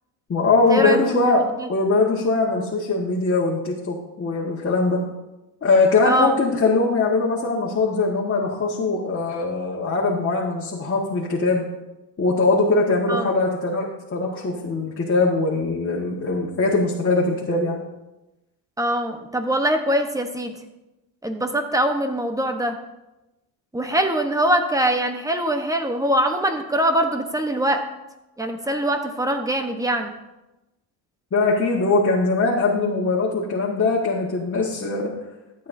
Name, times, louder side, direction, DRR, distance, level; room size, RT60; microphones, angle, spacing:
voice 1, 0.3-5.0 5.6-11.6 12.2-17.8 31.3-35.1, left 3 dB, 30° left, -4 dB, 1.7 m, -21 dB
voice 2, 18.8-20.5 21.2-22.8 23.7-27.8 28.4-30.1, right 1 dB, 10° right, 6 dB, 1.0 m, -22 dB
13.5 x 8.3 x 2.7 m, 0.99 s
cardioid pair, 100°, 43 cm